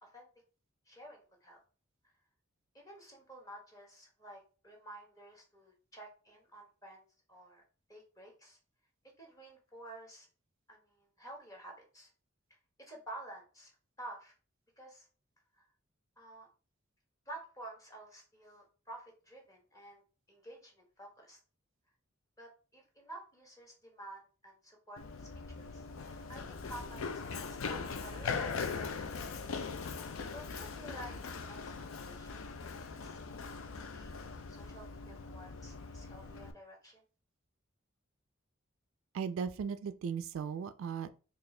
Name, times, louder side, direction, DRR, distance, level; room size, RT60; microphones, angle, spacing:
voice 1, 0.9-1.6 2.7-7.6 7.9-8.6 9.2-10.3 10.7-12.1 12.8-13.7 14.0-14.3 14.8-15.1 15.5-15.6 16.2-16.5 17.3-20.0 20.3-21.4 22.4-25.3 25.6-29.2 30.3-33.5 33.8-34.1 34.5-37.0, right 1 dB, 15° left, 1.2 m, -51 dB
Run, 25.0-36.5, left 5 dB, 75° left, 0.5 m, -41 dB
voice 2, 39.1-41.1, right 6 dB, 70° right, 0.3 m, -37 dB
4.2 x 2.4 x 3.2 m
head